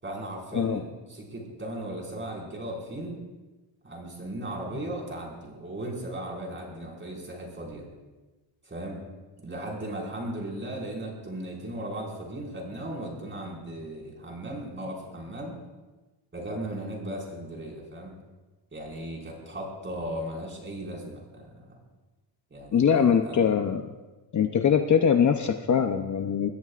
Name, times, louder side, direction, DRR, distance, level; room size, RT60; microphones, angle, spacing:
voice 1, 0.0-3.2 3.8-7.9 8.6-9.0 9.4-15.6 16.3-18.1 18.7-21.8 22.5-23.5, right 1 dB, 25° right, -2 dB, 5.2 m, -37 dB
voice 2, 22.7-23.9 24.3-26.5, left 7 dB, 40° left, 6 dB, 0.8 m, -22 dB
25.0 x 20.5 x 2.5 m, 1.2 s
wide cardioid pair, 160°, 45 cm